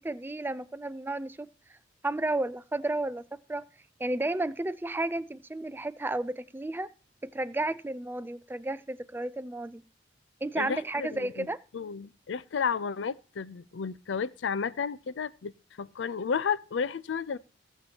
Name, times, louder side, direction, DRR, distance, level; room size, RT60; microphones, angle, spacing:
voice 1, 0.0-1.5 2.0-3.7 4.0-6.9 7.2-9.8 10.4-11.6, right 2 dB, 10° right, 0.4 m, -32 dB
voice 2, 10.6-11.5 11.7-15.5 15.8-17.4, left 6 dB, 80° left, 0.5 m, -32 dB
19.5 x 7.3 x 2.8 m
head